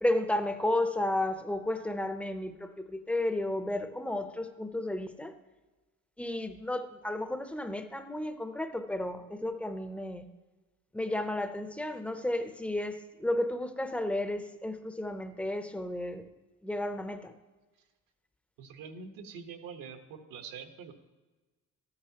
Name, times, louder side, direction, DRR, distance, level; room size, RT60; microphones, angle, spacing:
voice 1, 0.0-5.3 6.2-10.2 10.9-16.2 16.6-17.3, left 1 dB, 5° left, 8 dB, 0.5 m, -32 dB
voice 2, 18.6-20.9, right 6 dB, 85° right, 5 dB, 1.2 m, -45 dB
13.0 x 9.7 x 2.8 m, 1.2 s
cardioid pair, 170°, 32 cm